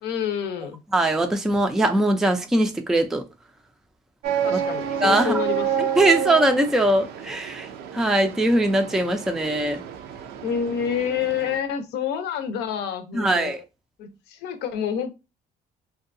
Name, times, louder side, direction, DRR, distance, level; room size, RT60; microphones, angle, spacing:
voice 1, 0.0-0.8 4.4-5.9 10.4-13.5 14.0-15.1, left 8 dB, 80° left, 0.6 m, -28 dB
voice 2, 0.9-3.2 4.5-4.6 5.0-5.4 5.8-7.7 7.9-9.8 13.1-13.6, right 1 dB, 5° right, 0.4 m, -21 dB
sound 1, 4.2-11.6, right 8 dB, 75° right, 0.5 m, -29 dB
2.7 x 2.2 x 2.5 m
cardioid pair, 110°, 17 cm